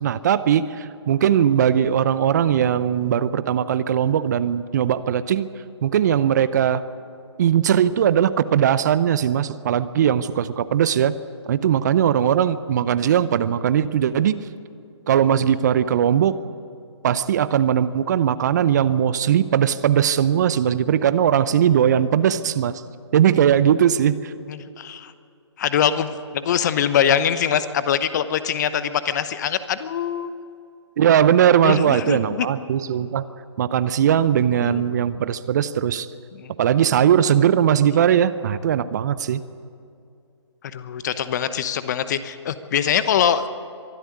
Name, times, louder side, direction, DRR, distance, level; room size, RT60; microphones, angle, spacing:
voice 1, 0.0-5.5 5.8-6.8 7.4-11.1 11.5-14.4 15.1-16.4 17.0-22.8 23.1-24.3 31.0-33.3 33.6-36.1 36.6-39.4, right 9 dB, 40° right, 15 dB, 0.7 m, -19 dB
voice 2, 24.5-25.1 25.6-30.3 31.6-32.5 34.6-34.8 36.4-36.5 40.7-43.5, left 9 dB, 40° left, 13 dB, 1.0 m, -23 dB
23.5 x 12.5 x 9.6 m, 2.4 s
figure-of-eight pair, 140°, 15 cm